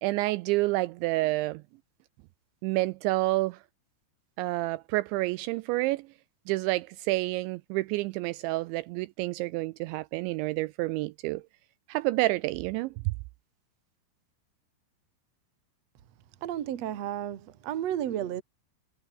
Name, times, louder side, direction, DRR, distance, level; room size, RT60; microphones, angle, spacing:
voice 1, 0.0-1.6 2.6-3.6 4.4-6.1 6.5-11.4 11.9-13.1, right 20 dB, 85° right, 2.7 m, -29 dB
voice 2, 16.4-18.4, right 11 dB, 65° right, 1.6 m, -32 dB
omnidirectional pair, 5.7 m